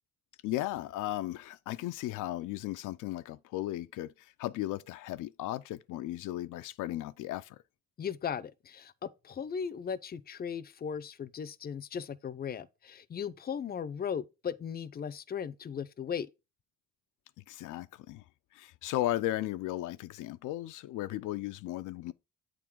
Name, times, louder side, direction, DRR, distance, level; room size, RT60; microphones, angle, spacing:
voice 1, 0.4-7.6 17.5-18.2 18.5-22.1, left 15 dB, 85° left, 0.5 m, -36 dB
voice 2, 8.0-16.3, left 7 dB, 30° left, 0.5 m, -37 dB
8.3 x 3.7 x 4.5 m
cardioid pair, 90°, 30 cm